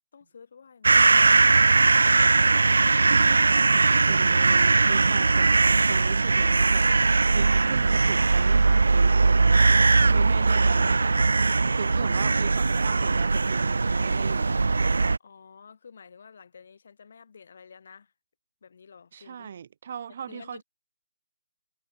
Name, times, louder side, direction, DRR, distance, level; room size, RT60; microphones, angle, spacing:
voice 1, 0.1-1.6 15.2-18.1 18.6-19.5 20.3-20.6, left 6 dB, 50° left, 7.4 m, -51 dB
sound 1, 0.8-15.2, right 3 dB, 90° right, 0.3 m, -20 dB
voice 2, 3.1-6.9 7.3-9.7 10.0-11.4 11.7-14.6 19.1-20.6, right 8 dB, 40° right, 2.6 m, -38 dB
hypercardioid pair, 170°, 0 cm